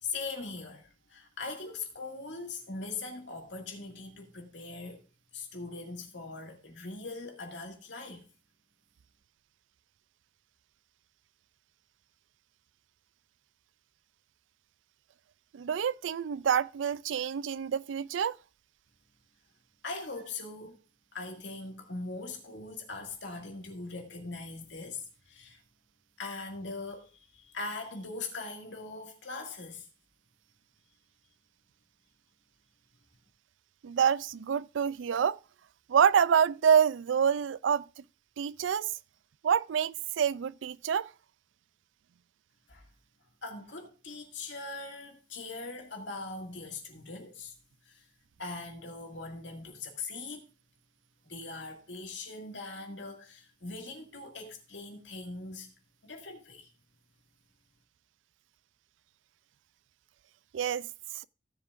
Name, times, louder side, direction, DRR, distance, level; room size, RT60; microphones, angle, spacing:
voice 1, 0.0-5.0 5.3-8.3 19.8-20.8 21.1-25.6 26.2-29.9 42.7-42.8 43.4-47.5 47.8-48.1 48.4-50.4 51.2-55.7 56.0-56.7, left 3 dB, 70° left, 2.3 m, -41 dB
voice 2, 15.5-18.4 33.8-35.4 35.9-37.8 38.4-38.9 39.4-41.1 60.5-60.9 61.1-61.3, right 7 dB, 80° right, 0.4 m, -27 dB
16.0 x 7.3 x 2.5 m
head